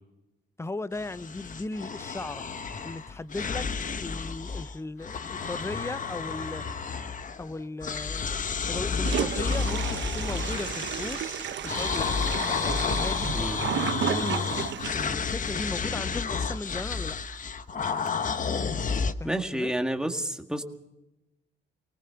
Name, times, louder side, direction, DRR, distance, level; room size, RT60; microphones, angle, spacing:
voice 1, 0.6-2.4 2.8-6.7 7.4-8.3 8.7-11.3 11.6-12.1 12.6-13.6 14.0-17.2 19.2-19.7, left 2 dB, 15° left, 0.6 m, -37 dB
sound 1, 0.9-4.7 5.0-7.5 7.8-19.1, left 5 dB, 40° left, 1.1 m, -31 dB
Toilet flush, 9.0-15.1, right 10 dB, 65° right, 1.1 m, -33 dB
voice 2, 19.2-20.6, right 1 dB, 5° right, 1.9 m, -30 dB
25.5 x 18.5 x 5.8 m
cardioid pair, 90°, 20 cm